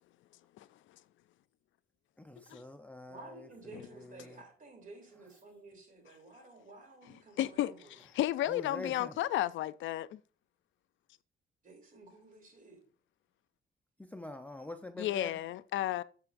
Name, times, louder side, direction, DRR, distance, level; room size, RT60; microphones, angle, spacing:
voice 1, 2.2-3.5 4.0-4.4 8.5-9.2 14.0-15.4, left 2 dB, 5° left, 0.6 m, -45 dB
voice 2, 3.1-8.0 11.6-12.8, right 2 dB, 45° right, 3.2 m, -53 dB
voice 3, 7.4-7.7 8.2-10.1 15.0-16.0, left 13 dB, 75° left, 0.4 m, -32 dB
10.5 x 6.8 x 2.6 m
cardioid pair, 90°, 20 cm